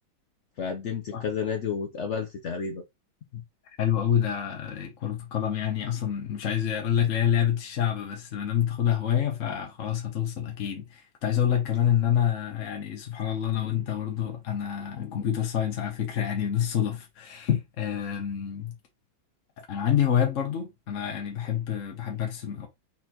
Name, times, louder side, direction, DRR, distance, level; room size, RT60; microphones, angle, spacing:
voice 1, 0.6-2.8, left 6 dB, 75° left, 0.6 m, -31 dB
voice 2, 3.3-18.7 19.6-22.7, left 9 dB, 55° left, 1.0 m, -27 dB
4.3 x 4.2 x 2.8 m
omnidirectional pair, 2.1 m